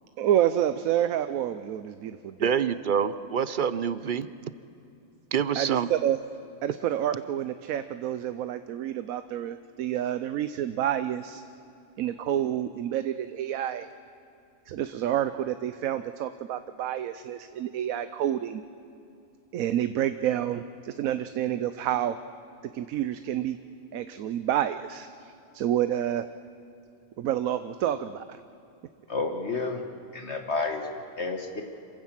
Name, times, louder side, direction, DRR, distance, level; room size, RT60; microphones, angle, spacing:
voice 1, 0.2-2.5 5.6-6.2 6.6-11.4 12.0-13.9 14.7-18.6 19.5-22.2 22.7-23.6 23.9-26.3 27.2-28.4, right 11 dB, 85° right, 11 dB, 1.1 m, -29 dB
voice 2, 2.4-4.3 5.3-5.9, right 7 dB, 55° right, 14 dB, 0.6 m, -26 dB
voice 3, 29.1-29.8 30.1-31.6, left 3 dB, 55° left, 4 dB, 1.6 m, -31 dB
27.0 x 15.5 x 7.4 m, 2.6 s
omnidirectional pair, 1.4 m